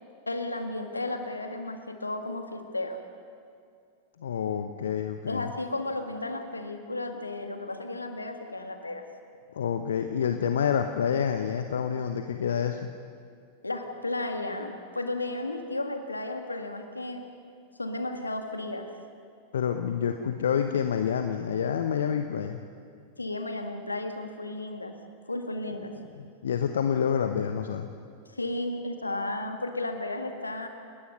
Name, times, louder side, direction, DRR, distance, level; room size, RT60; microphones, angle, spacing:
voice 1, 0.3-3.0 5.3-9.0 13.6-17.3 17.8-18.9 23.2-24.9 25.3-26.0 28.3-30.7, left 2 dB, 80° left, 6 dB, 1.9 m, -33 dB
voice 2, 4.2-5.5 9.5-12.9 19.5-22.6 26.4-27.9, left 7 dB, 65° left, 7 dB, 1.0 m, -28 dB
30.0 x 20.0 x 5.5 m, 2.3 s
figure-of-eight pair, 90°, 0 cm